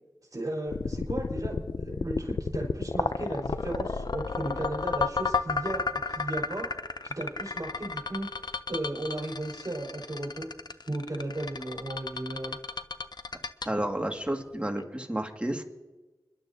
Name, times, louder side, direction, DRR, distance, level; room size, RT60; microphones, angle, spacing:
voice 1, 0.3-6.7 7.0-10.5 10.9-12.6, right 1 dB, 45° right, -3 dB, 4.3 m, -35 dB
sound 1, 0.7-14.8, left 4 dB, 65° left, 0.6 m, -32 dB
voice 2, 13.6-15.6, right 1 dB, 15° right, 3 dB, 2.0 m, -31 dB
29.5 x 11.5 x 2.8 m, 1.2 s
cardioid pair, 40°, 8 cm